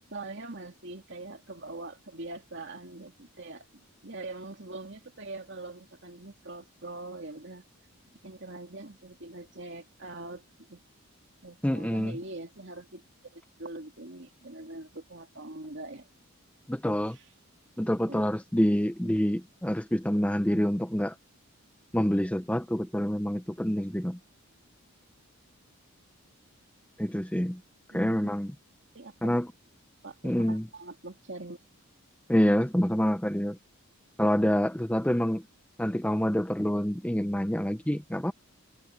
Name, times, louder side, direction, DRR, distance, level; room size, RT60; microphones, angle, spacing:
voice 1, 0.1-3.7 4.0-7.6 8.2-10.4 10.7-10.8 11.4-13.0 13.3-16.1 17.1-17.2 18.1-18.2 28.9-29.3 30.0-31.6, right 2 dB, 55° right, 2.7 m, -43 dB
voice 2, 11.6-12.2 16.7-17.2 17.8-21.2 21.9-24.2 27.0-27.6 27.9-28.5 29.2-29.5 30.2-30.7 32.3-33.6 34.2-35.5 35.8-38.3, equal, 5° left, 0.7 m, -27 dB
head